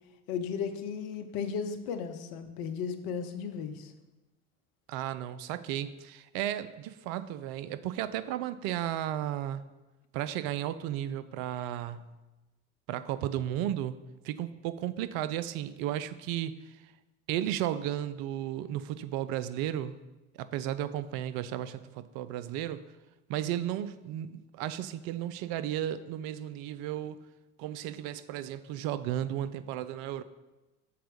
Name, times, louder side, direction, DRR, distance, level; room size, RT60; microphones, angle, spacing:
voice 1, 0.3-3.9, left 6 dB, 60° left, 8 dB, 0.9 m, -35 dB
voice 2, 4.9-9.6 10.1-12.1 12.9-13.9 14.2-16.8 17.3-19.9 20.3-22.8 23.3-27.2 27.6-30.2, right 12 dB, 60° right, 14 dB, 0.5 m, -34 dB
6.7 x 4.3 x 5.3 m, 1.1 s
hypercardioid pair, 70°, 42 cm